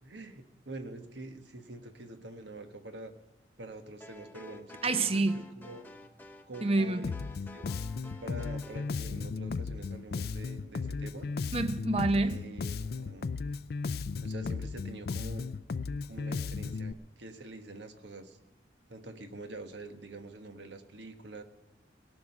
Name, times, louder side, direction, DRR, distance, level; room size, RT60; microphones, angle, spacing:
voice 1, 0.0-3.1 3.6-5.8 6.5-7.1 7.5-7.7 8.2-11.3 12.1-13.3 14.2-15.4 16.1-18.4 18.9-21.4, right 2 dB, 75° right, 1.3 m, -45 dB
sound 1, 4.0-8.9, left 1 dB, 10° left, 0.8 m, -51 dB
voice 2, 4.8-5.4 6.6-7.0 11.5-12.4, right 2 dB, 30° right, 0.6 m, -27 dB
Bass guitar, 7.0-16.9, left 4 dB, 55° left, 0.4 m, -35 dB
18.0 x 6.2 x 9.8 m
head